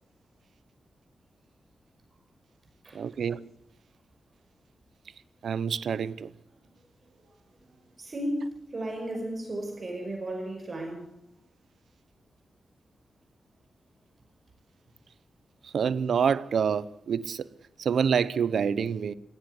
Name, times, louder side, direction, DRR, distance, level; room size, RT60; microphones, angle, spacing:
voice 1, 2.9-3.5 5.4-6.3 15.6-17.5 17.8-19.1, right 7 dB, 75° right, 0.8 m, -27 dB
voice 2, 8.0-11.1, right 1 dB, 35° right, 5.4 m, -34 dB
20.0 x 17.0 x 8.1 m
wide cardioid pair, 140°, 0 cm